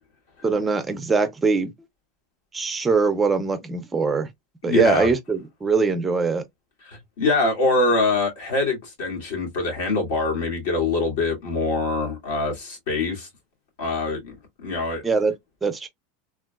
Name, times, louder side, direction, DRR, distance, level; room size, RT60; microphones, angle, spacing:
voice 1, 0.4-1.7 2.5-4.3 4.6-6.4 15.0-15.3 15.6-15.9, right 4 dB, 10° right, 0.4 m, -22 dB
voice 2, 4.6-5.1 6.8-13.3 13.8-15.0, left 2 dB, 70° left, 2.1 m, -24 dB
3.7 x 2.3 x 2.2 m
supercardioid pair, 170°, 0 cm